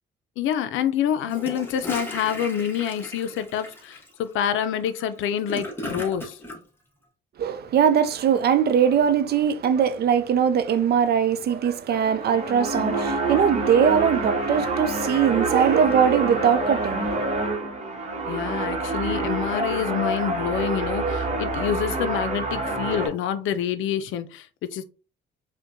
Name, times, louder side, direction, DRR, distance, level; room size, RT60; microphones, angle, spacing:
voice 1, 0.4-6.4 18.2-24.8, left 9 dB, 85° left, 0.5 m, -27 dB
Gurgling / Toilet flush, 1.2-6.6, left 1 dB, 10° left, 1.0 m, -36 dB
voice 2, 7.4-17.2, right 8 dB, 55° right, 0.5 m, -21 dB
sound 1, 12.0-23.1, right 2 dB, 35° right, 1.0 m, -27 dB
4.4 x 2.2 x 2.6 m
cardioid pair, 90°, 20 cm